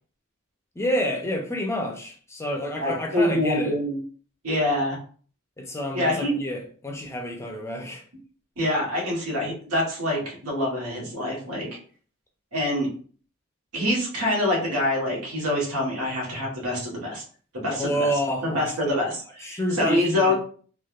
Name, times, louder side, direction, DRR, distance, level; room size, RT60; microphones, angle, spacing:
voice 1, 0.8-3.7 5.6-8.0 17.8-18.6 19.4-20.3, equal, 15° left, 0.5 m, -28 dB
voice 2, 2.8-4.0 4.4-5.0 5.9-6.4 8.6-11.7 12.5-12.9 13.7-17.2 17.5-20.3, left 1 dB, 85° right, 1.2 m, -25 dB
3.3 x 2.4 x 2.3 m
head